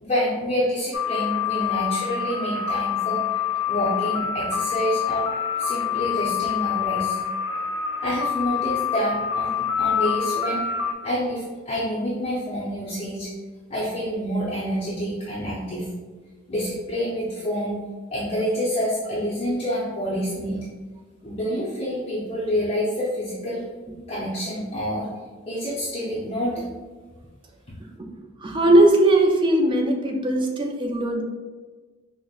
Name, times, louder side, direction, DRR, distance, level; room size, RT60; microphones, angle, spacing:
voice 1, 0.0-3.2 3.7-5.3 5.6-7.2 8.0-10.6 11.0-13.3 13.7-15.9 16.5-17.8 18.1-20.6 21.2-23.6 24.1-25.1 25.5-26.6, equal, 30° left, -8 dB, 0.6 m, -27 dB
sound 1, 0.9-10.9, left 8 dB, 75° left, 0.4 m, -26 dB
voice 2, 28.4-31.2, right 1 dB, 25° right, 2 dB, 0.4 m, -19 dB
5.0 x 2.1 x 2.3 m, 1.3 s
head